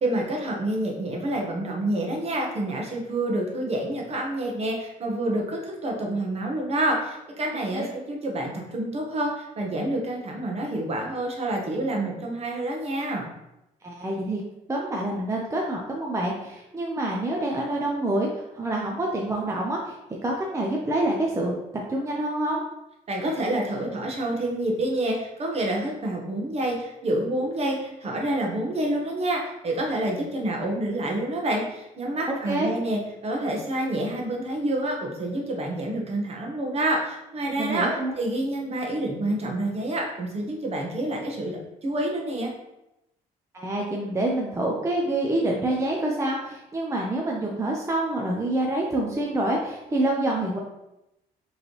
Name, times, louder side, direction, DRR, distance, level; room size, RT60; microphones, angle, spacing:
voice 1, 0.0-13.3 23.1-37.9 38.2-42.5, right 1 dB, 40° right, 0 dB, 1.1 m, -28 dB
voice 2, 13.8-14.4 14.7-20.0 20.2-21.6 21.9-22.6 32.5-32.7 37.6-38.1 43.5-50.6, right 1 dB, 20° right, -1 dB, 0.6 m, -27 dB
4.9 x 3.2 x 3.1 m, 0.90 s
cardioid pair, 115°, 16 cm